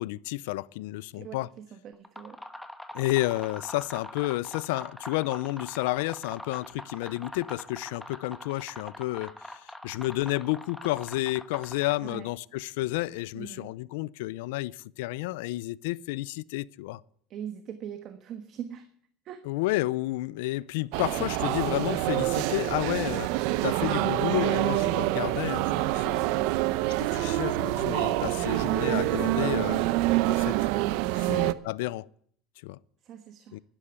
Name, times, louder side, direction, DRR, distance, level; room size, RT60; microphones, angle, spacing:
voice 1, 0.0-1.5 2.9-17.0 19.4-23.3 23.6-26.3 27.1-29.9 30.2-30.6 31.1-32.1 32.6-32.8 33.5-33.6, left 18 dB, 80° left, 0.5 m, -31 dB
voice 2, 1.1-2.4 12.0-12.3 13.3-13.7 17.3-18.9 19.2-19.4 31.2-31.5 33.0-33.6, right 9 dB, 45° right, 1.3 m, -42 dB
sound 1, 1.9-12.3, left 1 dB, 5° left, 1.1 m, -43 dB
sound 2, 20.9-31.5, right 17 dB, 70° right, 0.7 m, -26 dB
11.5 x 11.5 x 7.0 m
supercardioid pair, 135°, 0 cm